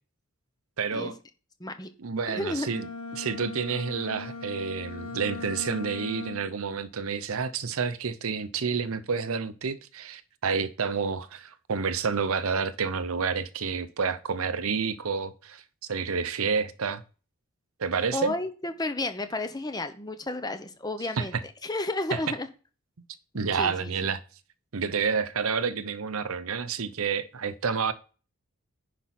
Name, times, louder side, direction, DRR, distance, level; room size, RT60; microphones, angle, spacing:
voice 1, 0.8-1.2 2.0-2.9 3.1-15.6 15.9-17.0 17.8-18.3 21.2-21.4 22.1-22.2 23.3-24.2 24.7-27.9, right 5 dB, 75° right, 0.7 m, -29 dB
voice 2, 2.3-2.7 18.1-22.5 23.6-23.9, left 2 dB, 20° left, 0.8 m, -32 dB
Bowed string instrument, 2.5-6.7, left 3 dB, 75° left, 1.7 m, -39 dB
10.0 x 5.2 x 4.2 m
head